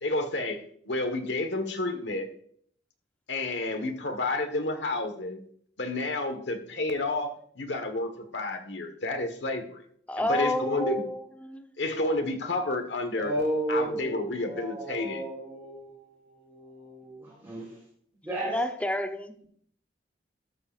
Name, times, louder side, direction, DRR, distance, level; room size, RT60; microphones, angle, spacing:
voice 1, 0.0-2.3 3.3-5.4 5.8-9.8 10.2-11.0 11.8-13.3 13.7-15.2, left 2 dB, 80° left, 1.5 m, -30 dB
voice 2, 10.1-11.7 18.5-19.3, left 1 dB, 10° left, 0.9 m, -29 dB
voice 3, 13.1-17.8 18.2-18.6, right 1 dB, 15° right, 3.9 m, -33 dB
13.5 x 12.5 x 2.5 m
head